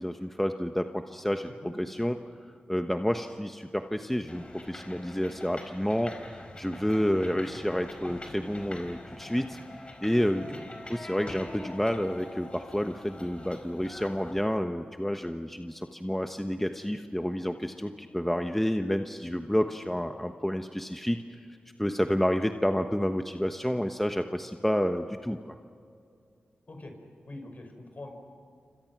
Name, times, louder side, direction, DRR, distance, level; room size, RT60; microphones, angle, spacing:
voice 1, 0.0-2.2 2.7-9.6 10.0-10.5 10.9-21.4 21.8-25.5, equal, 5° left, 6 dB, 1.2 m, -29 dB
sound 1, 4.3-14.5, left 1 dB, 35° left, 4.3 m, -45 dB
voice 2, 27.3-28.1, left 2 dB, 50° left, 4 dB, 5.6 m, -44 dB
27.5 x 25.5 x 6.1 m, 2.3 s
cardioid pair, 45°, 3 cm